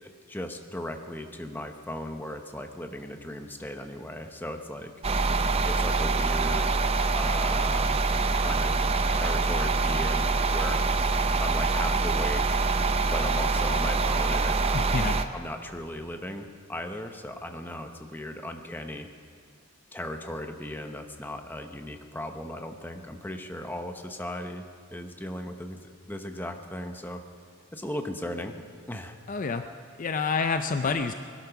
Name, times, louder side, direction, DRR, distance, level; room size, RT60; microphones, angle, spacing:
voice 1, 0.0-4.9 5.6-6.8 7.1-7.9 8.3-8.8 9.1-10.9 11.4-12.7 13.1-14.8 15.3-19.1 19.9-24.6 24.9-27.2 27.7-28.6 28.9-29.2, left 1 dB, 10° left, 5 dB, 0.9 m, -37 dB
sound 1, 5.0-15.3, right 3 dB, 30° right, 0.6 m, -25 dB
voice 2, 14.7-15.2 29.3-29.7 30.0-31.1, left 4 dB, 40° left, 8 dB, 0.4 m, -28 dB
20.5 x 12.0 x 5.9 m, 2.2 s
head